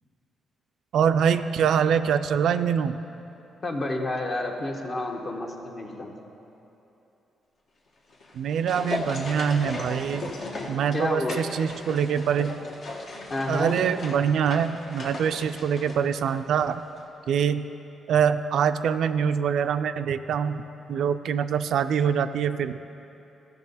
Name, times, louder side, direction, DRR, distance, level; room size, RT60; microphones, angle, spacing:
voice 1, 0.9-3.0 8.3-10.4 10.7-12.6 13.5-16.8 17.3-17.7 18.1-22.8, right 7 dB, 75° right, 10 dB, 0.3 m, -24 dB
voice 2, 3.6-6.1 10.9-11.4 13.3-13.8, left 2 dB, 45° left, 1 dB, 1.2 m, -29 dB
sound 1, 8.1-16.7 17.0-17.1, left 2 dB, 65° left, 1.3 m, -37 dB
14.0 x 6.8 x 4.1 m, 3.0 s
cardioid pair, 70°, 0 cm